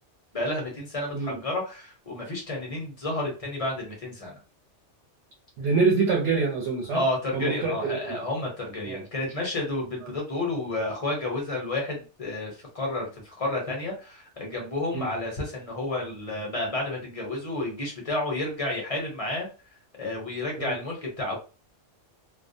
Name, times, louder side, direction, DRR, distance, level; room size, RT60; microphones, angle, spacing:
voice 1, 0.3-4.4 6.9-19.5 20.0-21.4, left 2 dB, 35° left, -1 dB, 0.7 m, -31 dB
voice 2, 5.6-7.0 7.3-8.2 8.9-9.0 10.0-10.1 14.9-15.1 20.6-20.7, right 4 dB, 65° right, -1 dB, 0.9 m, -25 dB
2.3 x 2.0 x 2.6 m, 0.33 s
omnidirectional pair, 1.2 m